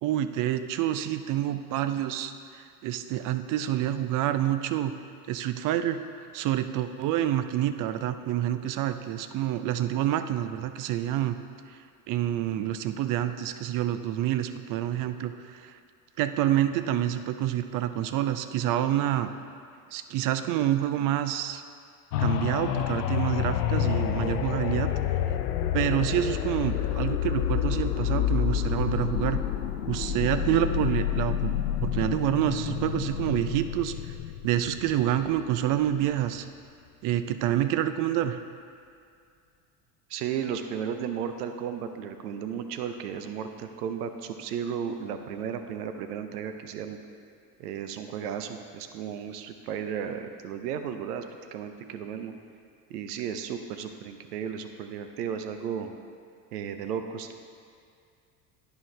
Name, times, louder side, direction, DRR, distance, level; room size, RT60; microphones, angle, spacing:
voice 1, 0.0-4.9 5.3-6.0 6.3-11.3 11.7-11.8 12.1-15.7 16.2-19.3 19.9-21.6 22.2-25.2 25.7-29.4 29.9-33.9 34.4-36.5 37.0-38.4, right 12 dB, 45° right, 10 dB, 0.5 m, -28 dB
sound 1, 22.1-35.8 36.3-36.4, left 10 dB, 80° left, 0.6 m, -28 dB
voice 2, 40.1-47.0 47.6-51.2 51.5-52.3 52.9-55.9 56.5-57.3, right 8 dB, 75° right, 7 dB, 0.7 m, -34 dB
11.0 x 4.6 x 3.3 m, 2.3 s
hypercardioid pair, 70°, 47 cm